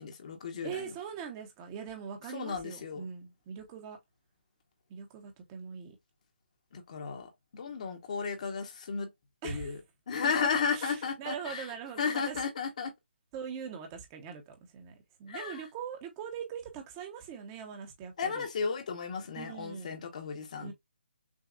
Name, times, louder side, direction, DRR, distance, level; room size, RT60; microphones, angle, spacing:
voice 1, 0.0-0.9 2.3-3.0 6.7-9.1 9.4-9.8 10.1-11.7 12.0-12.9 15.3-15.6 18.2-20.7, left 5 dB, 40° left, 1.1 m, -34 dB
voice 2, 0.6-4.0 4.9-6.0 9.4-9.7 10.2-12.4 13.3-18.5 19.4-20.0 20.6-20.7, right 7 dB, 20° right, 0.9 m, -42 dB
6.3 x 2.3 x 2.4 m
hypercardioid pair, 165°, 6 cm